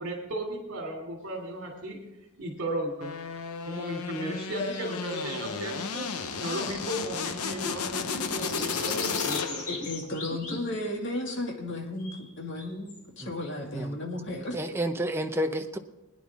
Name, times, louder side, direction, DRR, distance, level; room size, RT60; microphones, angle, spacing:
voice 1, 0.0-2.0 2.4-3.1 3.6-6.1 6.4-9.6 10.5-10.6, right 1 dB, 60° right, 0 dB, 2.8 m, -35 dB
sound 1, 3.0-9.9, left 5 dB, 85° left, 0.9 m, -33 dB
sound 2, 3.9-7.8 8.1-11.1 12.0-13.0, left 3 dB, 40° left, 3.3 m, -42 dB
voice 2, 9.7-14.6, left 1 dB, 55° left, 1 dB, 2.2 m, -34 dB
voice 3, 14.5-15.8, right 1 dB, 10° right, 5 dB, 0.7 m, -30 dB
22.0 x 9.9 x 3.6 m, 0.96 s
head